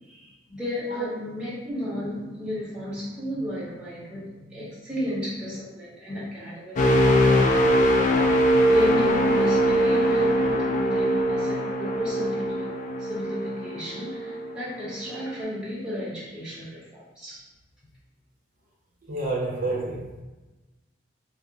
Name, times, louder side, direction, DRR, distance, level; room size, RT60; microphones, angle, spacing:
voice 1, 0.0-7.3 8.7-12.7 13.0-17.5, left 1 dB, 5° right, -9 dB, 0.7 m, -33 dB
sound 1, 6.8-14.6 15.0-15.3, equal, 40° left, 0.3 m, -22 dB
voice 2, 19.1-20.2, right 2 dB, 45° right, -5 dB, 0.7 m, -29 dB
2.3 x 2.0 x 3.8 m, 1.1 s
head